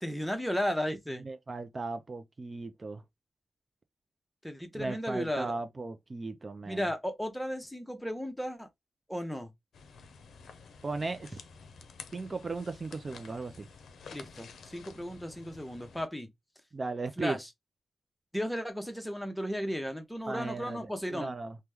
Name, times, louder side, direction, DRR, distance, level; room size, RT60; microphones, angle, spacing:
voice 1, 0.0-1.3 4.4-5.5 6.7-8.7 9.1-9.5 14.1-16.3 17.2-17.5 18.3-21.3, equal, 5° left, 0.8 m, -34 dB
voice 2, 1.2-3.0 4.7-6.9 10.8-11.4 12.1-13.7 16.7-17.4 20.3-20.8 21.1-21.6, right 3 dB, 40° right, 0.4 m, -36 dB
sound 1, 9.7-16.1, left 5 dB, 85° left, 0.5 m, -51 dB
3.0 x 2.1 x 3.4 m
cardioid pair, 75°, 0 cm